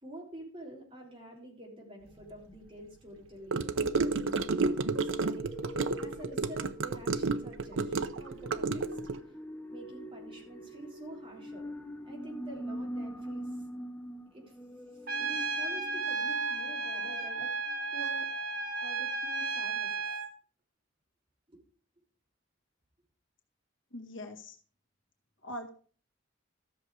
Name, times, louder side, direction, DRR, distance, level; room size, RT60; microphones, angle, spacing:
voice 1, 0.0-4.4 4.8-5.5 6.0-9.0 9.7-11.7 12.1-13.5 14.3-14.5 14.9-17.5 17.9-18.3 18.8-20.0 21.5-21.6, right 1 dB, 25° right, -1 dB, 3.6 m, -48 dB
sound 1, 2.1-2.3 3.4-19.4 19.8-19.9 20.1-20.2, equal, 10° left, 1.3 m, -44 dB
Gurgling / Car passing by / Sink (filling or washing), 3.5-9.2, right 3 dB, 75° right, 0.7 m, -31 dB
Trumpet, 15.1-20.3, right 4 dB, 50° right, 1.4 m, -33 dB
voice 2, 23.9-24.6 25.4-25.7, left 1 dB, 75° left, 3 dB, 1.9 m, -42 dB
13.5 x 6.7 x 4.9 m, 0.41 s
head